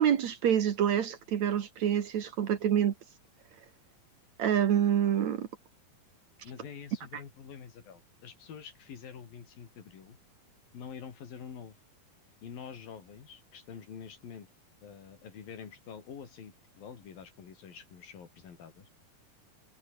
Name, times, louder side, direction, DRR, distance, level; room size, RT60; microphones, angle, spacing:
voice 1, 0.0-2.9 4.4-5.5, right 9 dB, 60° right, 2.5 m, -27 dB
voice 2, 6.4-10.2 10.7-11.8 12.4-14.5 14.8-18.9, left 7 dB, 75° left, 5.1 m, -47 dB
omnidirectional pair, 4.1 m